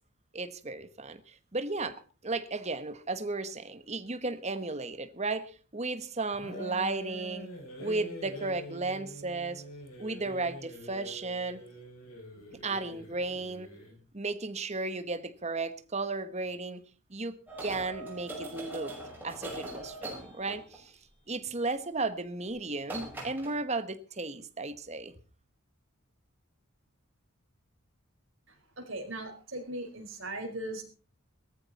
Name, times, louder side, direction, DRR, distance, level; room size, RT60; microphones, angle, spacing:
voice 1, 0.3-7.5 7.8-9.6 10.0-11.6 12.6-13.7 14.1-16.8 17.1-19.0 19.2-20.9 21.3-25.1, right 3 dB, 30° right, 1.2 m, -34 dB
sound 1, 6.3-14.0, right 1 dB, 85° left, 6.3 m, -45 dB
sound 2, 17.5-20.9 22.4-22.6 22.8-23.6, right 2 dB, 10° right, 6.2 m, -41 dB
voice 2, 28.8-30.8, right 1 dB, 60° right, 4.7 m, -38 dB
18.0 x 14.0 x 4.2 m
head